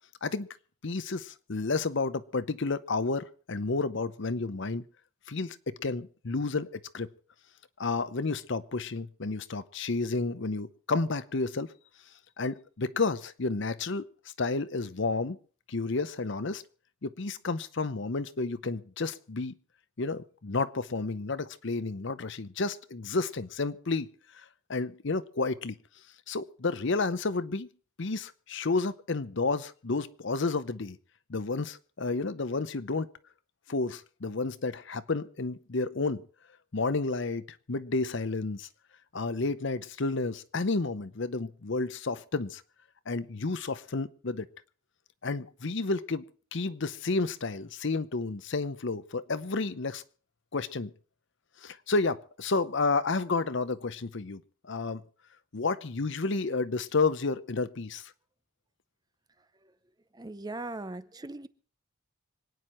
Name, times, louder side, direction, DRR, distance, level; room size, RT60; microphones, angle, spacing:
voice 1, 0.8-4.8 5.3-7.1 7.8-11.7 12.4-15.4 15.7-16.6 17.0-19.5 20.0-24.1 24.3-25.7 26.3-27.7 28.0-31.0 31.3-33.1 33.7-36.2 36.7-38.7 39.1-42.6 43.1-44.5 45.2-46.2 46.5-50.0 50.5-50.9 51.6-55.0 55.5-58.1, left 3 dB, 55° left, 0.8 m, -31 dB
voice 2, 59.4-59.8 60.1-61.5, right 2 dB, 20° right, 0.6 m, -40 dB
26.0 x 9.5 x 4.4 m
head